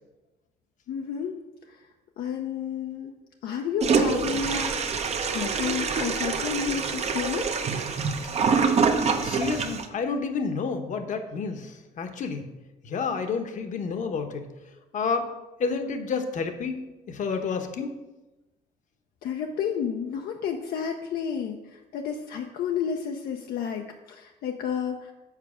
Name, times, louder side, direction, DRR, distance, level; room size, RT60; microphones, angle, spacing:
voice 1, 0.9-1.4 1.7-1.8 2.2-3.2 3.4-4.9 5.3-7.5 19.2-25.1, left 7 dB, 65° left, 3 dB, 0.7 m, -31 dB
Toilet flush, 3.8-9.9, right 5 dB, 40° right, 0.8 m, -25 dB
voice 2, 9.2-12.5 12.8-14.5 14.9-15.3 15.6-16.8 17.1-17.9, left 5 dB, 50° left, 6 dB, 1.0 m, -30 dB
7.4 x 4.6 x 6.2 m, 1.1 s
cardioid pair, 110°, 17 cm